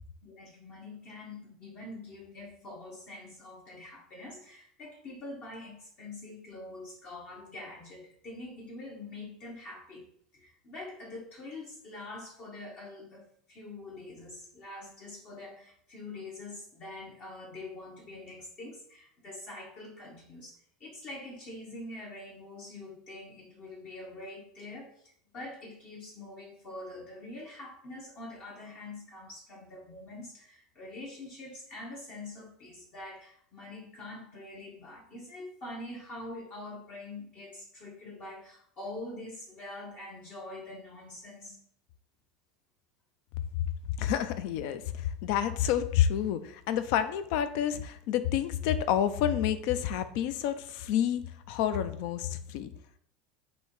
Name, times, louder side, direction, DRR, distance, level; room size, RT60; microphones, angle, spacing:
voice 1, 0.2-41.6, left 2 dB, 50° left, -3 dB, 1.0 m, -45 dB
voice 2, 44.0-52.7, left 10 dB, 65° left, 12 dB, 0.4 m, -29 dB
3.3 x 2.7 x 4.3 m, 0.64 s
supercardioid pair, 105°, 3 cm